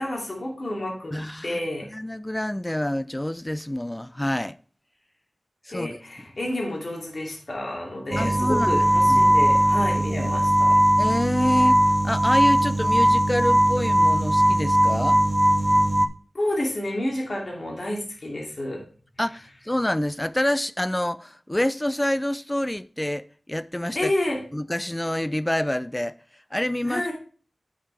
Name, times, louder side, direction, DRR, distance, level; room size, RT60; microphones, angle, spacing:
voice 1, 0.0-1.9 5.7-10.8 16.3-18.8 23.9-24.4 26.8-27.1, left 1 dB, 60° left, 2.6 m, -29 dB
voice 2, 1.1-4.6 5.7-5.9 8.2-8.8 9.1-9.3 10.1-10.3 11.0-15.2 19.2-24.1 24.5-26.2 26.5-27.0, left 1 dB, 15° left, 0.4 m, -27 dB
sound 1, 8.1-16.1, right 1 dB, 25° right, 0.7 m, -19 dB
8.5 x 6.8 x 3.3 m
wide cardioid pair, 55°, 0 cm